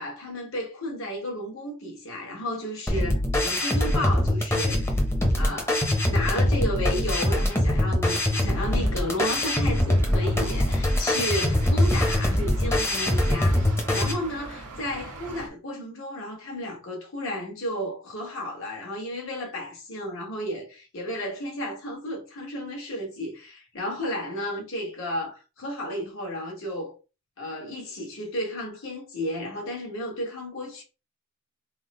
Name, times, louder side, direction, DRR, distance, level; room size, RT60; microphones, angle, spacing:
voice 1, 0.0-5.0 5.4-5.8 6.1-26.9 27.4-30.8, left 1 dB, 60° left, 1.5 m, -33 dB
sound 1, 2.9-14.1, left 1 dB, 10° left, 0.8 m, -23 dB
sound 2, 8.5-15.5, right 2 dB, 90° right, 1.2 m, -42 dB
3.7 x 2.1 x 4.2 m
head